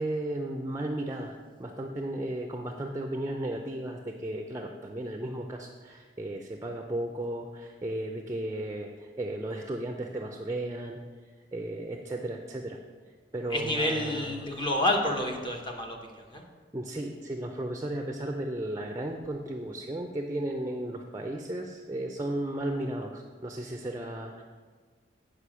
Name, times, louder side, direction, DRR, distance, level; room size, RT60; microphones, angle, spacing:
voice 1, 0.0-12.8 13.1-14.5 16.7-24.4, right 1 dB, 15° right, 3 dB, 0.5 m, -35 dB
voice 2, 13.5-16.4, left 1 dB, 25° left, 1 dB, 1.0 m, -29 dB
8.4 x 5.0 x 6.1 m, 1.5 s
head